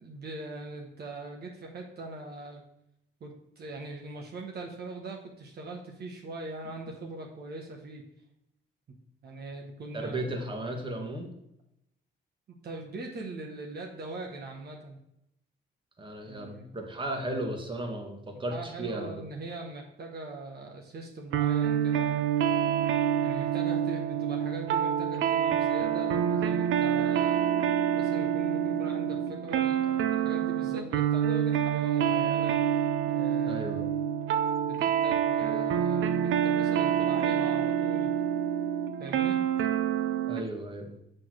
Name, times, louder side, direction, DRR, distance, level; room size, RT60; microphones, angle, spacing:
voice 1, 0.0-2.6 3.2-8.0 9.2-10.4 12.6-15.0 16.2-16.7 18.5-22.1 23.2-27.5 27.9-32.8 33.1-33.9 34.6-38.1 39.0-39.4, right 2 dB, 55° right, 1 dB, 1.2 m, -41 dB
voice 2, 9.9-11.3 16.0-19.1 33.5-33.8 40.3-41.0, right 1 dB, 25° right, 2 dB, 1.7 m, -35 dB
sound 1, 21.3-40.5, right 9 dB, 85° right, 0.7 m, -27 dB
6.8 x 4.4 x 6.3 m, 0.80 s
cardioid pair, 90°, 20 cm